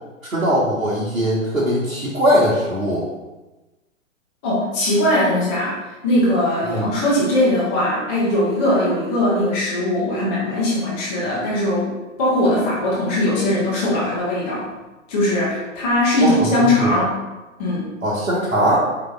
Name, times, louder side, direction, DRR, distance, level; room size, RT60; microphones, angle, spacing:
voice 1, 0.3-3.1 6.6-6.9 16.2-16.9 18.0-18.8, equal, 85° right, -7 dB, 1.1 m, -20 dB
voice 2, 4.4-14.7 15.1-17.2 17.6-17.9, left 1 dB, 10° left, -8 dB, 0.4 m, -20 dB
4.9 x 3.8 x 2.3 m, 1.1 s
figure-of-eight pair, 115°, 40 cm